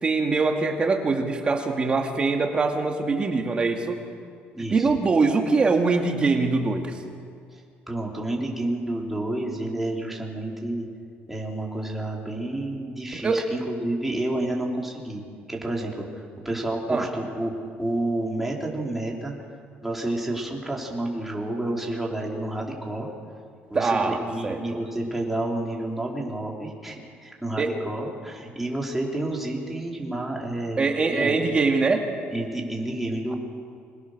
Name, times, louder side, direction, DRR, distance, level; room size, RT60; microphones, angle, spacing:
voice 1, 0.0-4.0 4.7-6.9 13.1-13.4 16.9-17.1 23.7-24.8 27.6-27.7 30.8-32.1, right 4 dB, 25° right, 3 dB, 2.2 m, -23 dB
voice 2, 4.5-4.9 7.5-7.6 7.9-10.9 11.3-15.2 15.5-17.5 17.8-19.3 19.8-23.1 23.7-31.3 32.3-33.4, right 1 dB, 5° right, -2 dB, 4.2 m, -30 dB
26.5 x 21.0 x 6.8 m, 2.3 s
cardioid pair, 130°, 4 cm